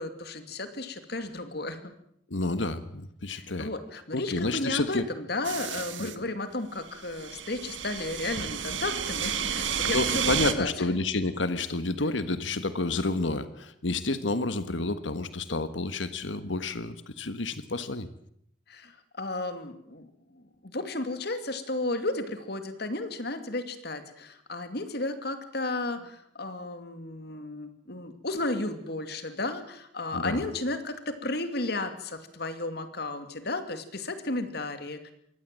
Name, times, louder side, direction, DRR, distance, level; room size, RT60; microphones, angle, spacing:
voice 1, 0.0-1.9 3.3-10.7 18.7-35.1, left 2 dB, 60° left, 9 dB, 2.6 m, -33 dB
voice 2, 2.3-3.7 4.1-5.0 6.0-6.3 9.9-18.1 30.1-30.4, left 2 dB, 80° left, 12 dB, 1.4 m, -30 dB
sound 1, 5.4-6.2 6.9-10.5, right 8 dB, 85° right, 1.8 m, -31 dB
23.0 x 17.5 x 7.6 m, 0.70 s
head